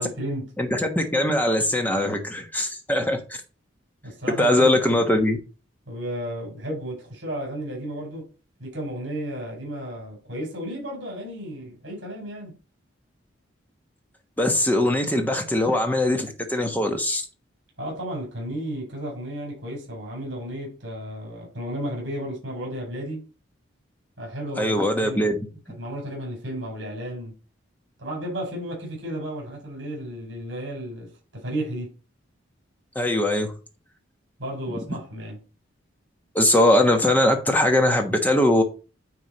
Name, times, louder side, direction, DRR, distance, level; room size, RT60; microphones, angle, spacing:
voice 1, 0.0-0.5 4.0-4.7 5.9-8.3 8.6-12.5 17.8-23.3 24.2-27.3 28.0-31.9 34.4-35.4, right 1 dB, 60° right, 4.7 m, -33 dB
voice 2, 0.6-3.4 4.4-5.4 14.4-17.2 24.6-25.5 32.9-33.5 36.3-38.6, left 1 dB, 10° left, 1.2 m, -21 dB
9.5 x 3.6 x 4.3 m
head